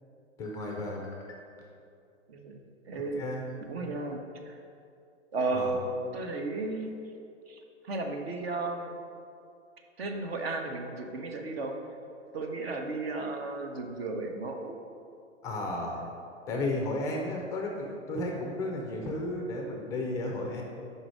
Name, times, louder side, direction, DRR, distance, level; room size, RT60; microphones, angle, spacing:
voice 1, 0.4-1.4 3.1-3.4 5.5-5.7 15.4-16.0 16.5-20.6, left 2 dB, 10° left, 1 dB, 0.4 m, -33 dB
voice 2, 2.8-3.2 3.6-4.2 4.5-4.6 5.3-6.9 7.5-9.0 10.0-11.8 12.3-14.8, right 3 dB, 50° right, 4 dB, 0.9 m, -34 dB
5.4 x 4.9 x 6.1 m, 2.4 s
figure-of-eight pair, 110°, 38 cm